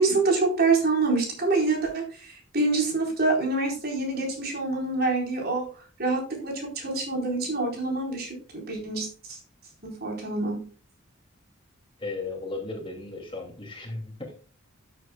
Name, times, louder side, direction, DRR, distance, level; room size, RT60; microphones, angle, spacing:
voice 1, 0.0-5.6 6.0-9.4 9.8-10.6, right 3 dB, 50° right, 0 dB, 4.1 m, -26 dB
voice 2, 12.0-14.3, left 3 dB, 25° left, 1 dB, 2.5 m, -35 dB
12.5 x 7.8 x 2.3 m, 0.39 s
head